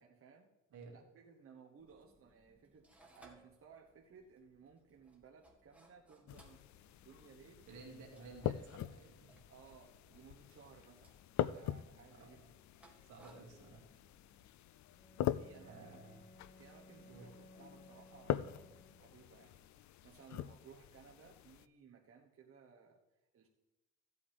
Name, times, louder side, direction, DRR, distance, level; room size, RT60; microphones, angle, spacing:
voice 1, 0.0-0.5 0.9-7.7 8.1-8.6 9.5-11.2 11.4-12.5 15.2-16.0 16.6-17.3 17.6-23.0 23.3-23.5, right 6 dB, 45° right, -1 dB, 1.2 m, -61 dB
sound 1, 1.8-14.5, right 1 dB, 5° right, 1.8 m, -67 dB
sound 2, 6.3-21.7, left 12 dB, 70° left, 0.5 m, -44 dB
voice 2, 7.7-9.4 12.1-12.4 13.0-13.9 15.6-16.2 17.0-17.3, right 3 dB, 75° right, 1 dB, 2.6 m, -54 dB
Bowed string instrument, 14.9-19.3, equal, 30° left, 1.5 m, -61 dB
15.5 x 8.3 x 3.5 m, 1.1 s
cardioid pair, 90°, 30 cm